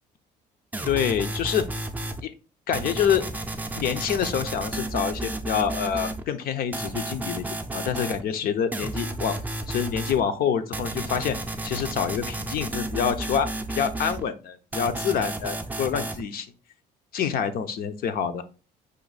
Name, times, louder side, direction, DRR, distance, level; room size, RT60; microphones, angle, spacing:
sound 1, 0.7-2.2 2.7-6.2 6.7-8.2 8.7-10.2 10.7-14.2 14.7-16.2, right 2 dB, 10° right, 0.5 m, -32 dB
voice 1, 0.8-1.6 2.2-2.3 2.7-3.2 3.8-7.4 7.7-9.4 9.7-11.4 11.6-13.5 13.8-16.5 17.1-18.4, left 8 dB, 60° left, 9 dB, 0.7 m, -26 dB
5.1 x 2.6 x 4.0 m, 0.34 s
cardioid pair, 110°, 17 cm